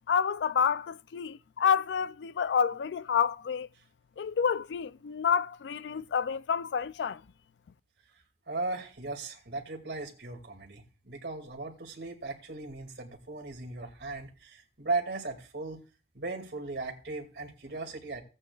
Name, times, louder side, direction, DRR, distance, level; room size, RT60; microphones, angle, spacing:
voice 1, 0.1-3.7 4.2-7.2, left 7 dB, 80° left, 0.4 m, -29 dB
voice 2, 8.5-15.8 16.1-18.2, right 3 dB, 70° right, 2.2 m, -37 dB
16.5 x 8.7 x 2.3 m
head